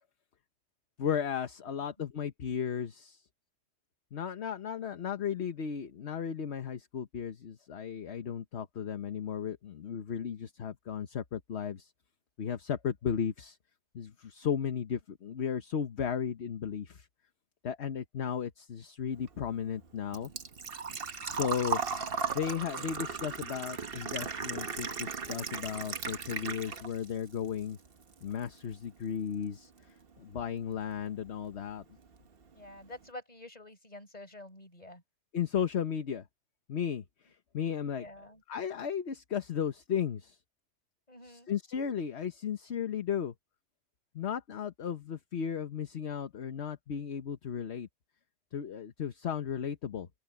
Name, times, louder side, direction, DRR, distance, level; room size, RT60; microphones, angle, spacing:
voice 1, 1.0-3.2 4.1-11.9 12.4-13.6 13.9-17.1 17.6-20.3 21.3-27.8 28.2-29.7 30.2-31.8 35.3-36.2 36.7-38.0 38.5-40.4 41.2-43.3 44.1-47.9 48.5-50.1, left 8 dB, 60° left, 1.3 m, -35 dB
Engine / Trickle dribble / Fill (with liquid), 19.2-27.1 27.4-28.4 28.7-28.8 30.7-30.8 31.0-31.3 31.7-31.8 32.1-32.2, right 5 dB, 50° right, 1.4 m, -36 dB
voice 2, 32.5-35.0 37.9-38.4 41.1-41.5, left 1 dB, 30° left, 5.6 m, -48 dB
open air
omnidirectional pair, 1.3 m